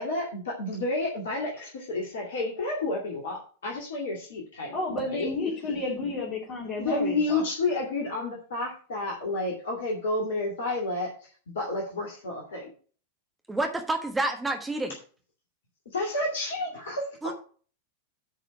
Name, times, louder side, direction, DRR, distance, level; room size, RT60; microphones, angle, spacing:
voice 1, 0.0-5.3 6.8-11.3 11.5-12.7 15.9-17.3, left 2 dB, 60° left, -1 dB, 2.4 m, -30 dB
voice 2, 4.7-7.4, left 2 dB, 35° left, -4 dB, 3.4 m, -31 dB
voice 3, 13.5-15.0 17.2-17.3, right 2 dB, 10° right, 4 dB, 1.4 m, -28 dB
9.9 x 4.9 x 6.0 m, 0.41 s
figure-of-eight pair, 90°, 0 cm